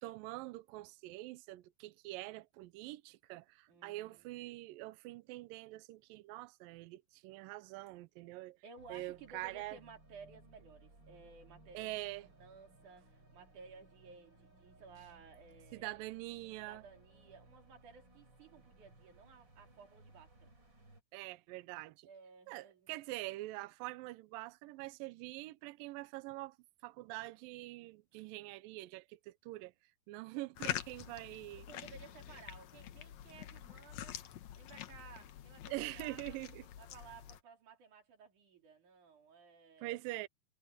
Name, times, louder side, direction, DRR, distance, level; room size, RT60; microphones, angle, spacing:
voice 1, 0.0-8.6 8.9-9.8 11.7-12.3 15.7-16.8 21.1-22.1 22.5-26.6 26.8-29.7 30.1-31.7 35.7-36.6 39.8-40.3, right 19 dB, 85° right, 2.1 m, -45 dB
voice 2, 3.7-4.3 8.6-11.9 12.4-16.0 16.6-20.5 22.0-22.9 31.7-34.2 34.5-36.4 36.8-40.0, right 5 dB, 50° right, 4.5 m, -57 dB
sound 1, 8.8-21.0, right 2 dB, 25° right, 6.5 m, -62 dB
sound 2, 30.5-37.4, left 12 dB, 75° left, 1.6 m, -46 dB
omnidirectional pair, 4.6 m